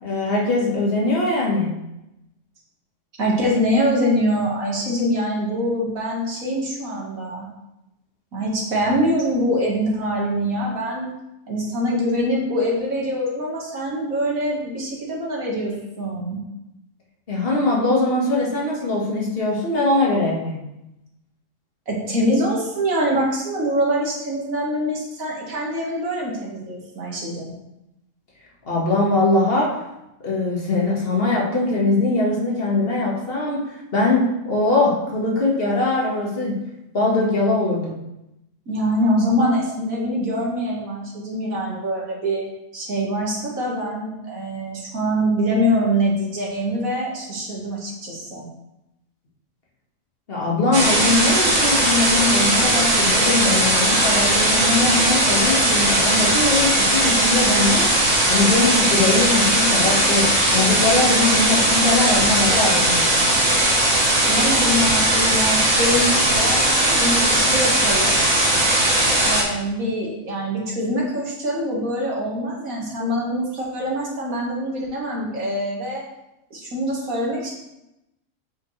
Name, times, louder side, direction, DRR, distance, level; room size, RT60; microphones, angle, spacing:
voice 1, 0.0-1.8 17.3-20.6 28.6-29.8 30.2-36.6 36.9-38.0 50.3-57.9 58.3-63.1, left 2 dB, 45° left, -3 dB, 1.8 m, -21 dB
voice 2, 3.2-7.5 8.3-11.1 11.5-16.4 21.9-27.5 38.7-42.5 42.7-48.5 64.3-68.2 69.2-76.0 76.5-77.5, equal, 85° right, -3 dB, 2.1 m, -24 dB
sound 1, 50.7-69.4, right 1 dB, 65° right, 2.2 m, -18 dB
8.2 x 5.2 x 3.2 m, 0.89 s
omnidirectional pair, 1.4 m